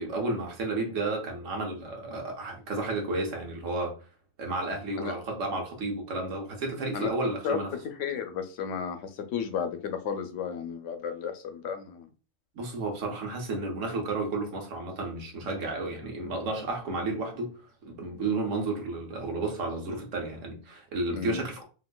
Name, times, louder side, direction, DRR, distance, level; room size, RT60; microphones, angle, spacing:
voice 1, 0.0-4.0 4.4-7.7 12.5-17.6 17.8-21.6, right 2 dB, 90° right, 1.2 m, -32 dB
voice 2, 8.0-12.1 21.1-21.4, left 7 dB, 80° left, 0.9 m, -33 dB
3.8 x 2.5 x 2.2 m
omnidirectional pair, 1.2 m